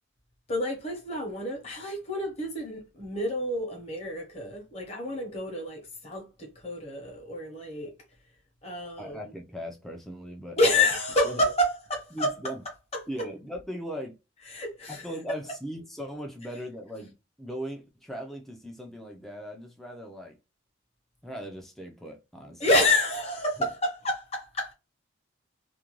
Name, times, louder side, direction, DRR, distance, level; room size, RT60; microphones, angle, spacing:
voice 1, 0.5-7.9 8.6-9.2 10.6-12.3 12.9-13.3 14.5-15.0 22.6-24.7, left 1 dB, 30° left, 0.9 m, -28 dB
voice 2, 9.0-10.9 11.2-11.4 12.1-12.6 13.1-14.2 14.9-20.4 21.2-22.7 23.6-23.7, equal, ahead, 0.4 m, -39 dB
2.5 x 2.2 x 2.9 m
head